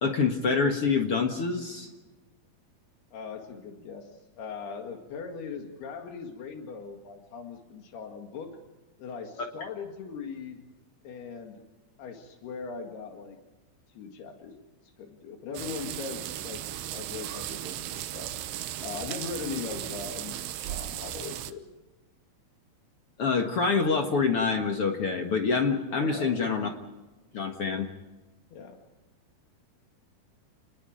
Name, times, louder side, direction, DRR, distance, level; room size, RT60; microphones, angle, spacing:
voice 1, 0.0-1.9 23.2-26.7 27.3-27.9, left 4 dB, 50° left, 4 dB, 1.8 m, -26 dB
voice 2, 3.1-4.1 4.4-8.6 9.0-10.7 11.0-11.6 12.0-13.4 14.0-14.5 15.0-16.6 16.9-18.3 18.8-21.7 25.9-26.3 28.5-28.8, left 5 dB, 80° left, 4 dB, 4.0 m, -40 dB
sound 1, 15.5-21.5, right 12 dB, 85° right, 3.1 m, -36 dB
29.5 x 20.5 x 5.1 m, 1.1 s
omnidirectional pair, 4.5 m